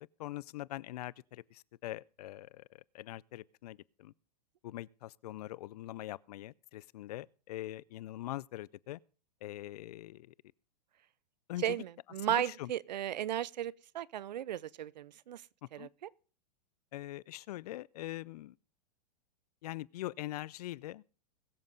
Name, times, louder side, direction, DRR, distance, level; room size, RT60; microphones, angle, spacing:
voice 1, 0.2-4.1 4.6-9.0 9.4-10.3 11.5-11.8 12.2-12.7 15.6-15.9 16.9-18.6 19.6-21.0, left 15 dB, 65° left, 0.5 m, -43 dB
voice 2, 11.6-15.4 15.7-15.9, right 11 dB, 85° right, 0.6 m, -35 dB
21.0 x 7.4 x 3.9 m
hypercardioid pair, 125°, 21 cm